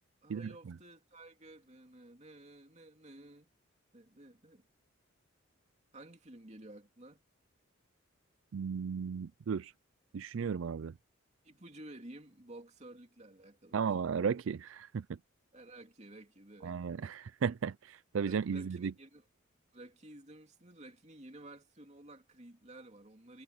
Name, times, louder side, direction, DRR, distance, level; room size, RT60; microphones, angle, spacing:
voice 1, 0.2-3.5 3.9-4.6 5.9-7.2 11.4-14.1 15.5-16.8 18.2-19.2 19.7-23.4, right 1 dB, 35° right, 2.7 m, -53 dB
voice 2, 8.5-9.7 10.1-10.9 13.7-15.0 16.6-18.9, right 6 dB, 70° right, 0.4 m, -35 dB
head